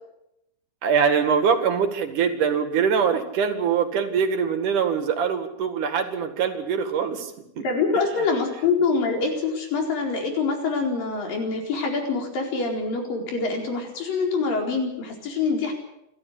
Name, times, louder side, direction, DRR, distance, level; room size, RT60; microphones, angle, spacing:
voice 1, 0.8-7.7, right 6 dB, 65° right, 8 dB, 3.4 m, -23 dB
voice 2, 7.6-15.7, left 4 dB, 80° left, 2 dB, 6.1 m, -25 dB
28.0 x 13.0 x 8.6 m, 0.83 s
omnidirectional pair, 3.9 m